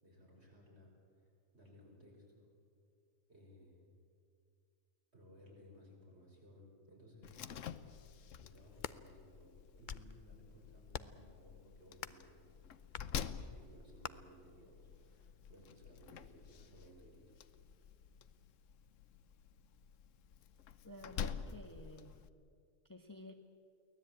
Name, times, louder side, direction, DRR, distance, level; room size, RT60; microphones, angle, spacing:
voice 1, 0.0-2.5 3.3-3.9 5.1-7.8 8.4-12.4 13.2-17.4, equal, 50° right, -2 dB, 6.3 m, -61 dB
Slam, 7.2-22.3, left 7 dB, 70° left, 1.1 m, -49 dB
sound 1, 8.6-9.0 9.6-10.2 10.9-11.3 12.0-12.3 12.9-13.1 14.0-14.1, left 8 dB, 50° left, 0.6 m, -45 dB
voice 2, 20.8-22.3 22.8-23.3, left 1 dB, 15° left, 5 dB, 1.2 m, -52 dB
23.5 x 18.0 x 8.9 m, 2.3 s
omnidirectional pair, 1.4 m